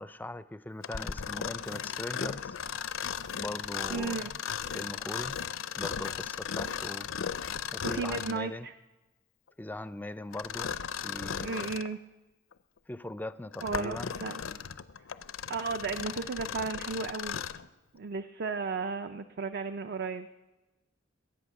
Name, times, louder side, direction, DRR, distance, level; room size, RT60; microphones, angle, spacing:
voice 1, 0.0-2.6 3.3-4.3 4.7-5.4 5.8-7.1 7.7-8.7 9.6-10.7 11.0-11.7 12.9-14.1, left 1 dB, 10° left, 0.4 m, -40 dB
Mechanisms, 0.8-8.5 10.3-11.9 12.5-12.6 13.3-17.7, left 7 dB, 85° left, 0.6 m, -36 dB
voice 2, 3.9-4.3 7.8-8.7 11.4-12.0 13.6-14.4 15.5-17.4 17.9-20.3, right 4 dB, 55° right, 0.5 m, -34 dB
22.0 x 8.7 x 6.4 m
head